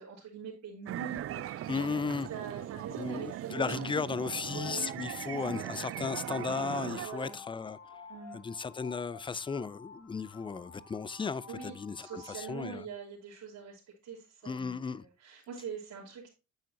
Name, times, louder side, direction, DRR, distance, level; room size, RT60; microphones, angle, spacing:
voice 1, 0.0-1.9 2.3-3.9 4.4-5.0 5.3-5.7 7.0-7.4 8.1-8.4 11.5-16.3, right 6 dB, 80° right, 3.1 m, -43 dB
sound 1, 0.9-7.1, right 12 dB, 50° right, 0.4 m, -39 dB
voice 2, 1.7-2.3 3.0-7.8 8.3-12.8 14.4-15.0, left 5 dB, 15° left, 0.4 m, -35 dB
sound 2, 4.2-12.6, left 5 dB, 70° left, 1.8 m, -51 dB
9.1 x 7.5 x 2.8 m
cardioid pair, 90°, 30 cm